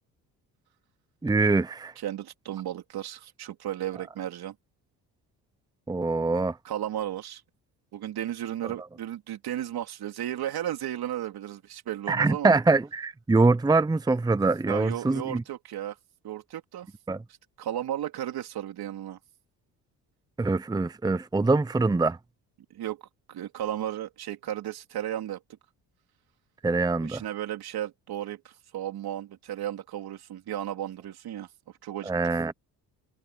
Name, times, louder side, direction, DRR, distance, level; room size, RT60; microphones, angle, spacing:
voice 1, 1.2-1.9 5.9-6.6 12.1-15.4 17.1-17.2 20.4-22.2 26.6-27.2 32.1-32.5, right 3 dB, 10° right, 0.7 m, -24 dB
voice 2, 2.0-4.5 6.6-7.4 7.9-12.5 14.7-16.0 16.2-16.9 17.6-19.2 22.7-23.0 23.3-25.4 27.0-31.5 31.8-32.1, right 11 dB, 65° right, 3.5 m, -34 dB
cardioid pair, 85°, 40 cm